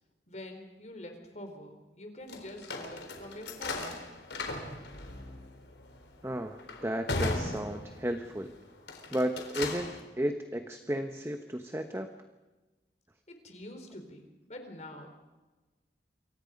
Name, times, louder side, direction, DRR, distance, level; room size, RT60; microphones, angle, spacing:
voice 1, 0.3-4.0 13.3-15.1, left 1 dB, 40° left, 5 dB, 4.5 m, -46 dB
sound 1, 2.3-8.3 8.8-10.0, left 2 dB, 80° left, 4.2 m, -37 dB
voice 2, 6.2-8.5 9.1-12.1, equal, 15° right, 6 dB, 1.1 m, -33 dB
28.0 x 24.0 x 5.3 m, 1.2 s
head